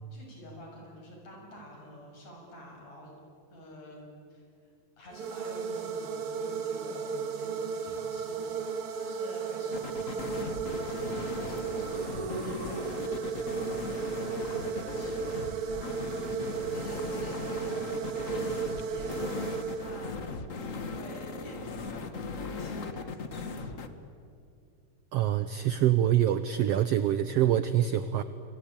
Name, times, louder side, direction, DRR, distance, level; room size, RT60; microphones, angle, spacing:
voice 1, 0.1-3.1 3.5-20.2 20.5-23.7, equal, 55° left, 0 dB, 8.1 m, -49 dB
sound 1, 5.1-20.3, right 6 dB, 50° right, 2.0 m, -35 dB
sound 2, 9.7-23.9, left 4 dB, 90° left, 0.7 m, -38 dB
voice 2, 25.1-28.2, right 11 dB, 85° right, 12 dB, 1.3 m, -25 dB
28.0 x 23.0 x 8.7 m, 2.5 s
omnidirectional pair, 3.8 m